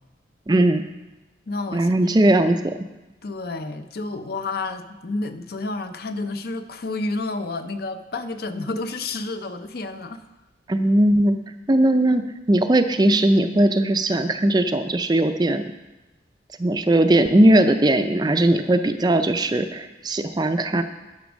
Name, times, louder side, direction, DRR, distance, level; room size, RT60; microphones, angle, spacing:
voice 1, 0.5-0.8 1.7-2.7 10.7-11.4 11.7-15.6 16.6-20.8, right 1 dB, 20° right, 8 dB, 0.4 m, -19 dB
voice 2, 1.5-1.9 3.2-10.3, left 3 dB, 50° left, 9 dB, 0.6 m, -30 dB
10.5 x 6.1 x 6.2 m, 1.1 s
head